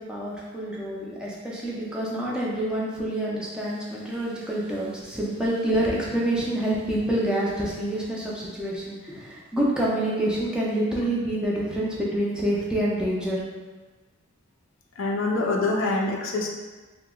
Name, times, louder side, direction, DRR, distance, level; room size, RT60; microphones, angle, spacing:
voice 1, 0.0-13.4, right 1 dB, 5° right, -6 dB, 0.4 m, -27 dB
voice 2, 15.0-16.5, left 2 dB, 65° left, 0 dB, 0.4 m, -25 dB
2.7 x 2.0 x 3.6 m, 1.3 s
head